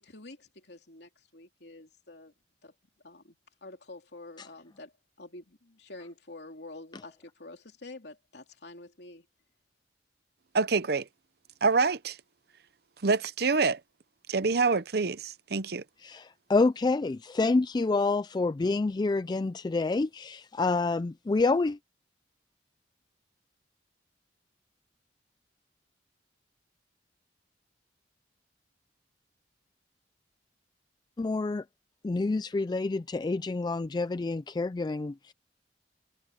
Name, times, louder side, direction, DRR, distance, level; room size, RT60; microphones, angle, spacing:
voice 1, 0.0-2.3 2.6-2.7 3.0-4.9 5.2-9.2, left 2 dB, 65° left, 3.2 m, -48 dB
voice 2, 10.5-11.1 11.6-12.2 13.0-13.8 14.3-15.8, right 4 dB, 60° right, 0.8 m, -26 dB
voice 3, 16.0-21.8 31.2-31.6 32.0-35.3, left 3 dB, 25° left, 0.3 m, -28 dB
head